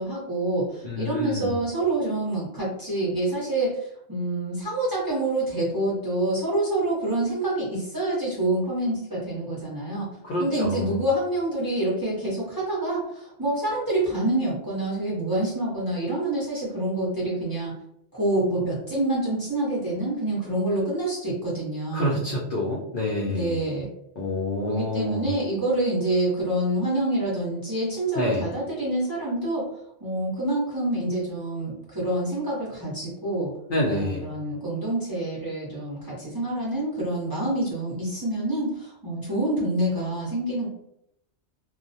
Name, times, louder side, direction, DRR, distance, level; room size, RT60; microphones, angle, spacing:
voice 1, 0.0-3.8 4.1-10.1 10.4-17.7 18.1-22.2 23.3-23.9 24.7-29.7 30.0-33.5 33.8-40.7, right 1 dB, 25° right, -7 dB, 0.7 m, -27 dB
voice 2, 0.8-1.5 10.2-11.0 21.9-23.6 24.2-25.3 28.2-28.4 33.7-34.3, left 1 dB, 60° left, -3 dB, 0.6 m, -27 dB
2.3 x 2.0 x 2.6 m, 0.75 s
omnidirectional pair, 1.1 m